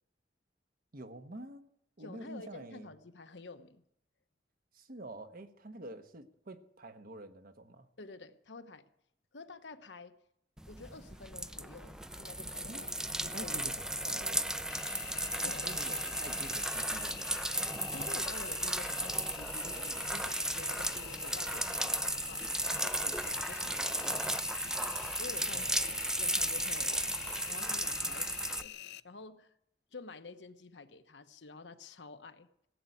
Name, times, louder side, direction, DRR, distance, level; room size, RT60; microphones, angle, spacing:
voice 1, 0.9-1.7 2.0-2.9 4.7-7.9 12.6-12.9 13.3-14.5 15.4-17.5 25.5-26.2, right 1 dB, 55° right, 8 dB, 1.2 m, -48 dB
voice 2, 2.0-3.8 8.0-8.8 9.3-10.1 10.7-12.9 13.2-13.6 15.4-15.7 17.9-22.4 22.8-28.7 29.0-29.5 29.9-32.5, left 3 dB, 85° left, 9 dB, 1.0 m, -50 dB
sound 1, 10.6-28.6, right 1 dB, 5° right, 0.5 m, -35 dB
sound 2, 10.8-22.2, right 1 dB, 30° right, 0.8 m, -57 dB
Engine, 14.7-29.0, left 14 dB, 65° left, 0.5 m, -47 dB
16.5 x 8.1 x 8.6 m, 0.74 s
head